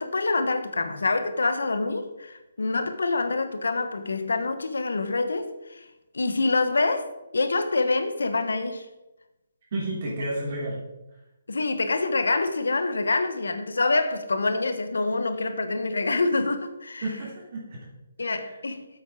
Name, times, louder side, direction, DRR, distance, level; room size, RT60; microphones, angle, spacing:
voice 1, 0.0-5.9 6.1-8.8 11.5-17.0 18.2-18.9, left 3 dB, 85° left, 1.2 m, -26 dB
voice 2, 9.7-10.8 17.0-17.8 18.2-18.6, right 1 dB, 50° right, 3.5 m, -32 dB
9.1 x 7.9 x 4.9 m
hypercardioid pair, 155°, 0 cm